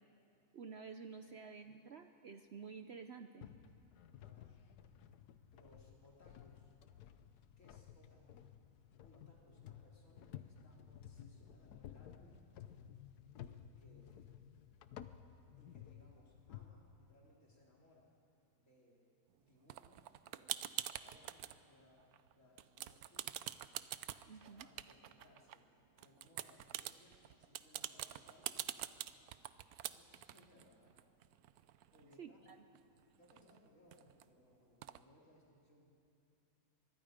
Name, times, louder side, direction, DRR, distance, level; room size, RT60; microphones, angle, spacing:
voice 1, 0.5-3.5 24.3-24.7 32.2-32.6, right 5 dB, 55° right, 7 dB, 0.8 m, -51 dB
sound 1, 3.4-16.7, left 10 dB, 85° left, 1.3 m, -55 dB
voice 2, 4.2-4.5 5.5-6.7 7.6-8.5 9.0-12.4 13.4-14.2 15.6-18.1 18.6-19.1 19.4-20.6 21.0-22.1 22.3-23.5 24.3-25.7 26.0-29.2 29.8-31.0 31.9-32.7 33.2-35.9, left 1 dB, 55° left, -3 dB, 3.9 m, -67 dB
sound 2, 19.7-21.5 22.0-22.3 22.6-25.6 26.0-32.1 32.5-32.6 32.8-34.2 34.8-35.0, right 12 dB, 75° right, 1.1 m, -45 dB
24.0 x 22.0 x 5.1 m, 2.7 s
omnidirectional pair, 1.6 m